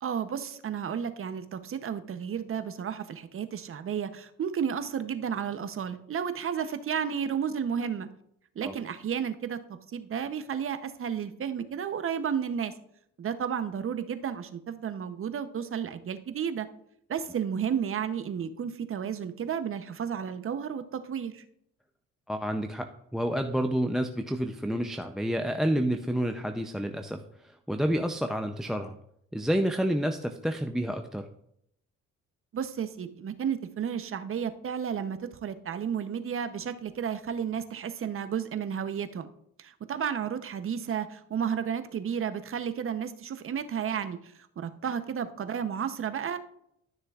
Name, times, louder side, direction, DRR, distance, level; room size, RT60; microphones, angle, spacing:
voice 1, 0.0-8.1 8.6-12.7 13.2-16.7 17.1-21.4 32.5-39.3 39.6-46.4, right 8 dB, 45° right, 11 dB, 0.7 m, -32 dB
voice 2, 22.3-27.2 27.7-29.0 29.3-31.3, equal, ahead, 7 dB, 0.5 m, -29 dB
12.5 x 6.5 x 2.4 m, 0.73 s
cardioid pair, 90°, 30 cm